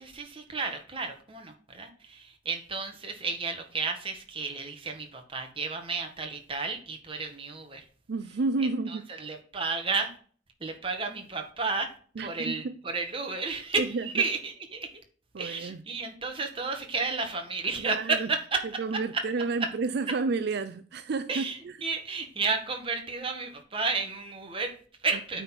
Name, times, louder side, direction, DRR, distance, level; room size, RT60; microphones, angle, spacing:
voice 1, 0.0-7.9 8.6-10.1 10.6-14.9 15.4-18.6 18.9-19.2 19.6-19.7 21.3-25.4, right 4 dB, 30° right, 1.7 m, -32 dB
voice 2, 8.1-9.1 12.2-12.8 13.8-14.2 15.3-15.8 17.8-18.3 18.8-21.8, right 3 dB, 65° right, 0.4 m, -31 dB
8.9 x 4.1 x 5.9 m
head